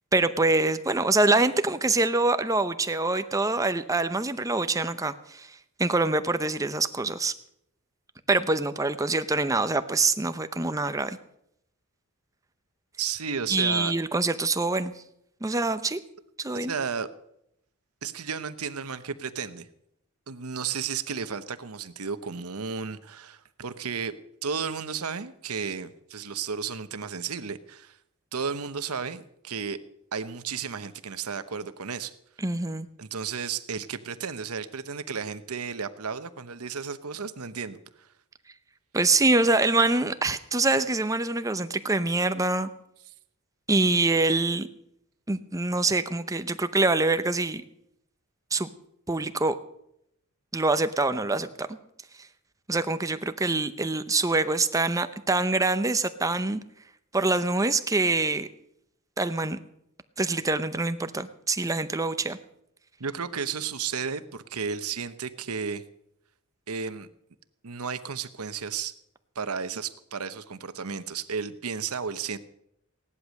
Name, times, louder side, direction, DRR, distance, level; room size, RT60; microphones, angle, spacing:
voice 1, 0.1-5.5 5.8-7.3 8.3-11.2 13.5-14.9 15.4-16.0 16.4-16.7 32.4-32.9 38.9-42.7 43.7-44.7 45.3-47.6 48.5-48.7 49.1-49.5 50.5-51.8 52.7-56.6 57.1-58.5 59.2-59.6 60.2-62.4, right 3 dB, 15° right, 11 dB, 0.7 m, -25 dB
voice 2, 13.0-13.9 15.5-15.6 16.5-17.1 18.0-19.7 20.3-24.2 24.4-28.0 28.3-29.8 30.1-32.1 33.0-38.1 63.0-65.8 66.7-67.1 67.6-68.9 69.3-72.4, right 6 dB, 80° right, 11 dB, 1.0 m, -33 dB
16.5 x 11.0 x 6.5 m, 0.77 s
head